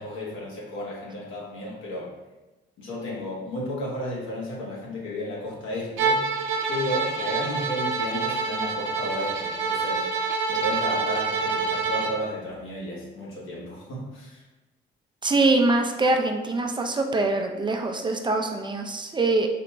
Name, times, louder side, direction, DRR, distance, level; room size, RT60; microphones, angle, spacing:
voice 1, 0.0-2.1 2.8-6.2 6.7-10.0 10.5-14.4, left 1 dB, 85° left, -5 dB, 1.4 m, -33 dB
Bowed string instrument, 6.0-12.2, right 4 dB, 75° right, 0.6 m, -27 dB
voice 2, 15.2-19.5, right 2 dB, 25° right, 3 dB, 0.4 m, -23 dB
4.1 x 2.9 x 3.3 m, 1.1 s
cardioid pair, 90°, 20 cm